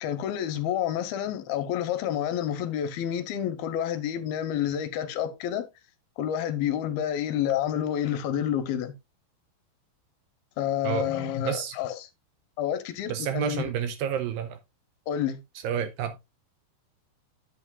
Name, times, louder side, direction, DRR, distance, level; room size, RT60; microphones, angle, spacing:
voice 1, 0.0-5.6 6.2-8.9 10.6-12.1 12.6-13.6 15.1-15.4, left 10 dB, 80° left, 2.6 m, -29 dB
voice 2, 13.1-14.6 15.6-16.4, right 9 dB, 80° right, 2.1 m, -30 dB
9.7 x 8.7 x 2.4 m
omnidirectional pair, 4.6 m